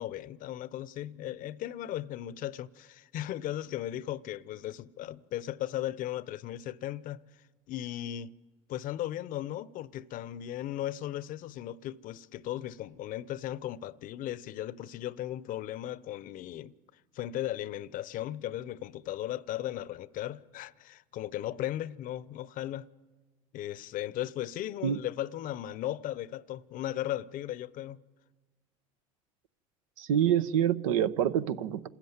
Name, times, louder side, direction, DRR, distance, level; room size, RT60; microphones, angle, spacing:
voice 1, 0.0-7.2 7.7-8.3 8.7-16.7 17.1-22.9 23.5-28.0, left 13 dB, 55° left, 0.7 m, -36 dB
voice 2, 30.0-31.9, right 10 dB, 80° right, 0.8 m, -26 dB
27.0 x 13.5 x 9.5 m
hypercardioid pair, 80°, 17 cm